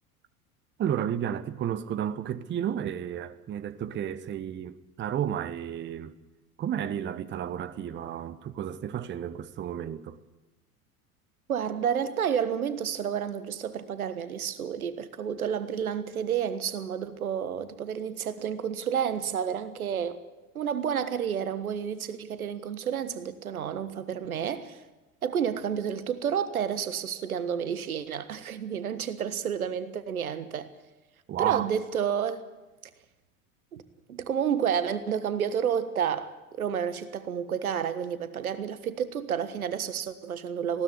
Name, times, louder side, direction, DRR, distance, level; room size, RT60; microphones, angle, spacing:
voice 1, 0.8-6.1 6.6-10.2 31.3-31.7, right 10 dB, 25° right, 0.9 m, -32 dB
voice 2, 11.5-20.2 20.5-24.8 25.2-30.7 31.4-32.4 33.7-33.8 34.1-40.8, right 8 dB, 70° right, 1.5 m, -30 dB
20.0 x 16.0 x 9.7 m
figure-of-eight pair, 75°, 44 cm